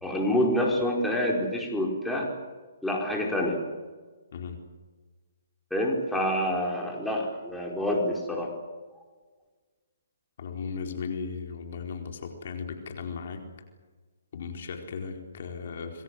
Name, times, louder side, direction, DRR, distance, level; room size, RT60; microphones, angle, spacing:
voice 1, 0.0-2.3 2.8-3.6 5.7-8.5, left 1 dB, 5° left, -1 dB, 5.0 m, -27 dB
voice 2, 10.4-13.5 14.3-16.0, left 5 dB, 55° left, 4 dB, 4.4 m, -36 dB
27.5 x 21.5 x 8.1 m, 1.4 s
hypercardioid pair, 140°, 0 cm